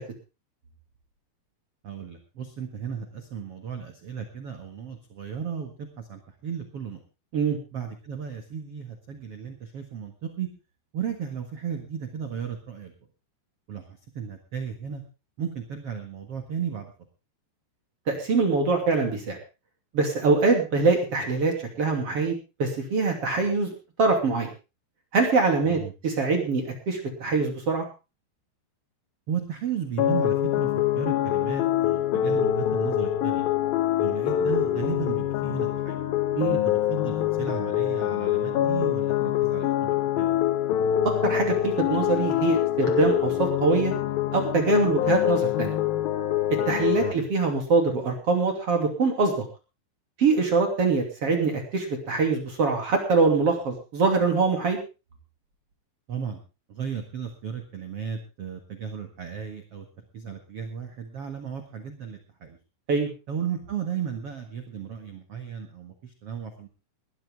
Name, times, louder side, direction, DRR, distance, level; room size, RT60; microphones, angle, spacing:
voice 1, 1.8-7.0 7.7-10.5 10.9-12.9 13.7-15.0 15.4-16.9 25.6-25.9 29.3-33.5 34.0-36.0 36.6-40.4 47.0-47.2 56.1-56.4 56.7-59.9 60.1-62.6 63.3-66.7, right 7 dB, 60° right, 5 dB, 1.5 m, -35 dB
voice 2, 18.1-19.4 19.9-23.7 24.0-24.5 25.1-27.8 36.3-36.6 41.0-43.9 44.3-45.7 46.7-49.3 50.2-54.8 62.9-63.1, right 4 dB, 35° right, 3 dB, 3.0 m, -24 dB
sound 1, 30.0-47.1, left 11 dB, 75° left, 2.3 m, -25 dB
20.0 x 13.0 x 3.6 m, 0.30 s
omnidirectional pair, 5.4 m